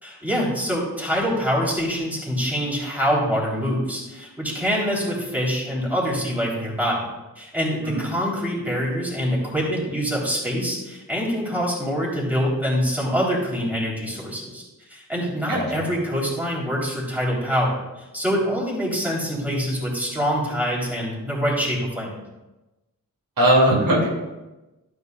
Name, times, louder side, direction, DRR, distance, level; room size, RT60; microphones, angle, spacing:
voice 1, 0.0-7.0 7.4-14.6 14.9-22.1, equal, 5° right, -5 dB, 3.7 m, -25 dB
voice 2, 15.5-15.8 23.4-24.1, right 1 dB, 85° right, -3 dB, 2.8 m, -19 dB
12.5 x 9.6 x 2.4 m, 1.0 s
wide cardioid pair, 95°, 34 cm